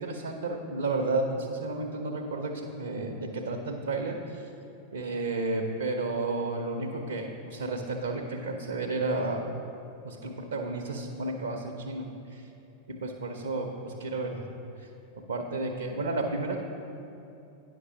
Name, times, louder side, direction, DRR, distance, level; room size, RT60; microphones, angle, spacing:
voice 1, 0.0-4.5 4.9-9.4 10.0-12.5 12.9-14.5 14.8-14.9 15.2-16.6, right 2 dB, 70° right, 2 dB, 0.7 m, -32 dB
9.8 x 6.1 x 5.3 m, 2.8 s
figure-of-eight pair, 90°, 0 cm